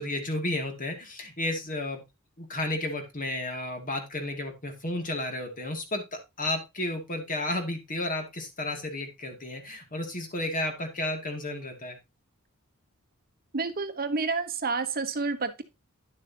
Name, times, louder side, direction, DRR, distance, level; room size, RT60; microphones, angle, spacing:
voice 1, 0.0-2.0 2.4-6.0 6.4-12.0, left 1 dB, 40° left, 4 dB, 2.4 m, -32 dB
voice 2, 13.5-15.6, right 4 dB, 45° right, 9 dB, 1.0 m, -29 dB
10.5 x 7.3 x 2.8 m, 0.24 s
head